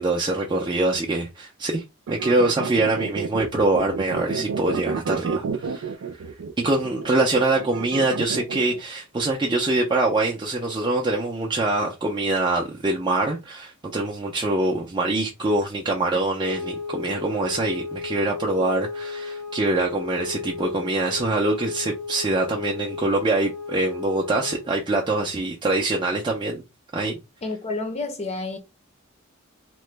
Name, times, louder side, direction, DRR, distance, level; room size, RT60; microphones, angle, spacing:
voice 1, 0.0-1.8 2.1-6.0 6.6-26.6 26.9-27.2, right 2 dB, 20° right, 0.4 m, -24 dB
sound 1, 2.1-8.8, right 5 dB, 80° right, 0.4 m, -30 dB
sound 2, 16.4-24.7, left 4 dB, 80° left, 0.9 m, -34 dB
voice 2, 27.4-28.6, left 3 dB, 30° left, 0.6 m, -29 dB
2.9 x 2.1 x 3.2 m
head